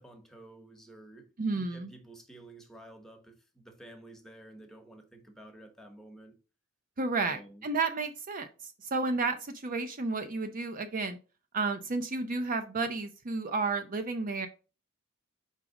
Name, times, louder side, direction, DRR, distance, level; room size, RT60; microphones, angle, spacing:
voice 1, 0.0-6.3 7.2-7.7, right 1 dB, ahead, 1.2 m, -51 dB
voice 2, 1.4-1.9 7.0-8.5 8.8-11.2 11.5-14.5, right 3 dB, 40° right, 0.5 m, -32 dB
4.9 x 4.0 x 5.0 m
head